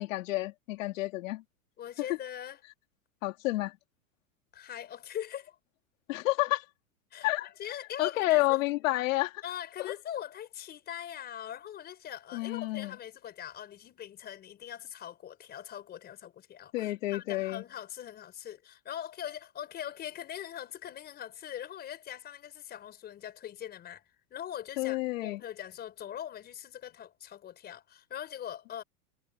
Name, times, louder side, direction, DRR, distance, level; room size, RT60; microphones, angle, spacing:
voice 1, 0.0-1.4 3.2-3.8 6.1-6.6 7.2-7.5 8.0-9.4 9.8-9.9 12.3-13.0 16.7-17.6 24.8-25.4, left 18 dB, 60° left, 3.8 m, -30 dB
voice 2, 1.8-2.6 4.5-5.6 7.1-8.6 9.4-24.0 24.3-28.8, left 10 dB, 20° left, 5.3 m, -42 dB
supercardioid pair, 160°, 43 cm